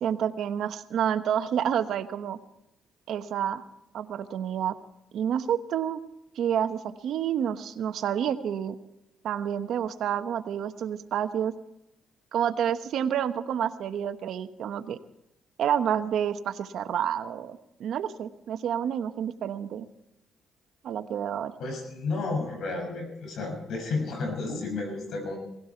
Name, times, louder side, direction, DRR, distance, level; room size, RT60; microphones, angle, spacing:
voice 1, 0.0-2.4 3.1-3.6 3.9-4.8 5.1-6.0 6.3-8.8 9.2-11.5 12.3-15.0 15.6-19.9 20.8-21.6, right 9 dB, 75° right, 10 dB, 1.1 m, -29 dB
voice 2, 21.6-25.4, left 3 dB, 75° left, 4 dB, 6.3 m, -32 dB
18.5 x 16.0 x 4.5 m, 0.87 s
cardioid pair, 90°, 0 cm